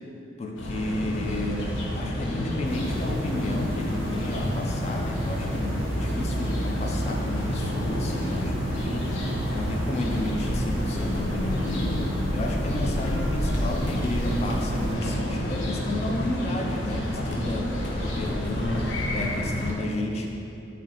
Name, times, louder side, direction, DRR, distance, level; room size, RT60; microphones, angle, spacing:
voice 1, 0.4-9.1 9.5-20.3, left 1 dB, 35° left, 1 dB, 0.3 m, -32 dB
sound 1, 0.6-19.7, left 1 dB, 85° left, 0.6 m, -29 dB
sound 2, 2.6-15.0, right 1 dB, 30° right, 0.4 m, -32 dB
4.0 x 3.1 x 4.1 m, 2.8 s
head